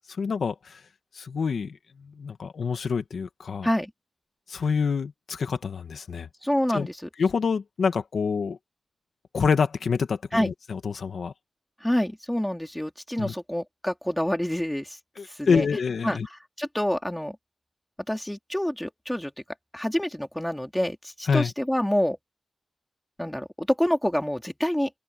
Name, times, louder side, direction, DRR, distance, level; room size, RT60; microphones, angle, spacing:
voice 1, 0.2-0.8 1.2-3.7 4.5-6.3 6.7-6.9 7.2-8.6 9.3-11.3 13.2-13.3 15.2-16.3 21.3-21.5, left 5 dB, 75° left, 2.0 m, -27 dB
voice 2, 6.4-7.0 10.3-10.5 11.8-15.0 15.3-15.7 16.0-16.2 16.6-17.4 18.1-19.3 19.7-22.2 23.2-24.9, equal, 5° left, 2.9 m, -27 dB
open air
wide cardioid pair, 115°, 0 cm